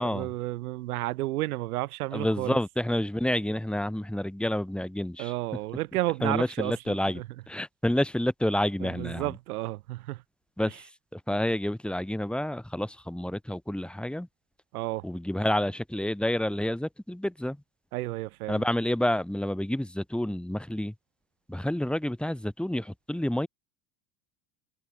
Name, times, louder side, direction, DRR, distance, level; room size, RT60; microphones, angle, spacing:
voice 1, 0.0-2.6 5.2-7.2 8.8-10.2 14.7-15.1 17.9-18.6, right 18 dB, 80° right, 2.5 m, -32 dB
voice 2, 2.1-5.3 6.2-7.2 7.5-9.3 10.6-14.3 15.0-17.6 18.5-20.9 21.5-23.5, left 1 dB, ahead, 5.9 m, -29 dB
supercardioid pair, 105°, 44 cm